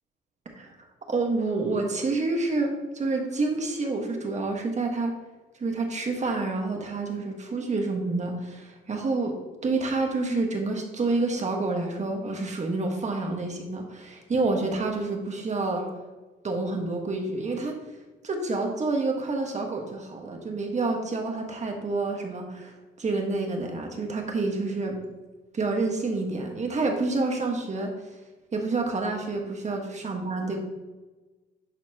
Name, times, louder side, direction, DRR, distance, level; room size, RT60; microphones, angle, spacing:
voice 1, 0.4-0.8 1.1-5.1 5.5-15.9 16.4-17.8 18.2-25.0 25.5-28.2 28.5-30.6, right 3 dB, 35° right, 2 dB, 1.5 m, -28 dB
11.0 x 4.4 x 2.9 m, 1.2 s
cardioid pair, 90°, 20 cm